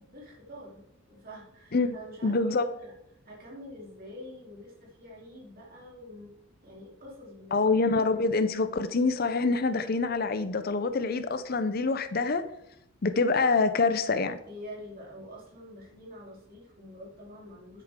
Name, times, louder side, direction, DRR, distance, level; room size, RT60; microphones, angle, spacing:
voice 1, 0.0-2.9 3.2-6.3 6.6-7.7 14.4-17.8, equal, 45° right, 3.3 m, -46 dB
voice 2, 2.2-2.7 7.5-12.4 13.0-14.4, left 3 dB, 45° left, 0.5 m, -26 dB
9.8 x 8.4 x 3.7 m
head